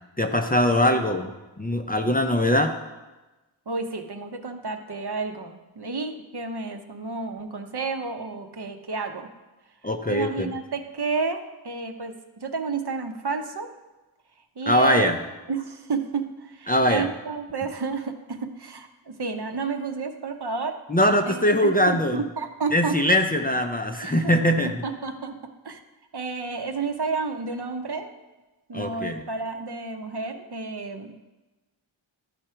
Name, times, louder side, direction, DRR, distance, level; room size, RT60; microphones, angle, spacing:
voice 1, 0.2-1.3 1.6-2.7 9.8-10.5 14.7-15.2 16.7-17.1 20.9-22.2 22.7-24.8 28.7-29.2, left 1 dB, 20° left, 4 dB, 0.5 m, -21 dB
voice 2, 3.7-9.3 10.1-12.1 12.4-13.7 14.6-15.1 15.5-20.8 21.3-22.9 24.0-24.3 24.6-25.4 25.6-25.8 26.1-28.1 28.7-31.2, right 4 dB, 55° right, 5 dB, 0.8 m, -31 dB
12.5 x 4.9 x 4.4 m, 1.1 s
wide cardioid pair, 70°, 49 cm